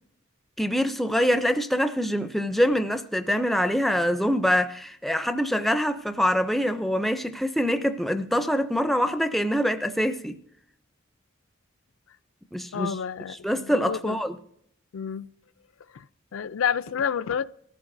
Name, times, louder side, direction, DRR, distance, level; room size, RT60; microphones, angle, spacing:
voice 1, 0.6-10.4 12.5-12.9 13.4-14.4, equal, ahead, 0.4 m, -24 dB
voice 2, 12.7-14.2 14.9-15.3 15.9-16.1 16.3-17.4, left 7 dB, 75° left, 0.4 m, -29 dB
23.0 x 14.5 x 2.6 m
head